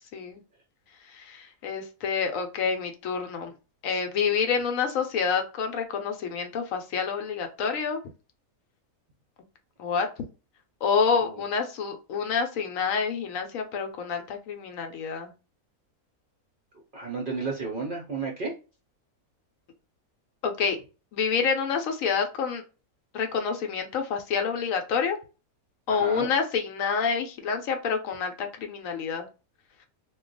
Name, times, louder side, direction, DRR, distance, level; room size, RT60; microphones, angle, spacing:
voice 1, 1.1-3.5 3.8-8.0 9.8-10.1 10.8-15.3 20.4-20.8 21.1-22.6 23.1-25.2 25.9-29.3, left 6 dB, 70° left, 5 dB, 0.9 m, -28 dB
voice 2, 16.9-18.5 25.9-26.3, right 4 dB, 55° right, -1 dB, 0.6 m, -32 dB
2.3 x 2.2 x 3.8 m, 0.32 s
omnidirectional pair, 1.5 m